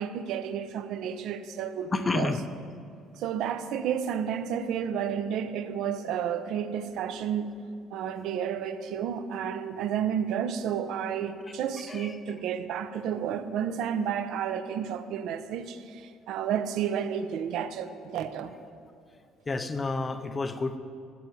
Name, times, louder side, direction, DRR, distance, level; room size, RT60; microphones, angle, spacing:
voice 1, 0.0-2.3 3.2-7.6 7.9-18.5, right 8 dB, 55° right, 0.7 m, -31 dB
voice 2, 1.9-2.4 11.9-12.2 19.5-20.8, left 3 dB, 15° left, 0.6 m, -30 dB
14.0 x 9.6 x 7.8 m
cardioid pair, 180°, 0 cm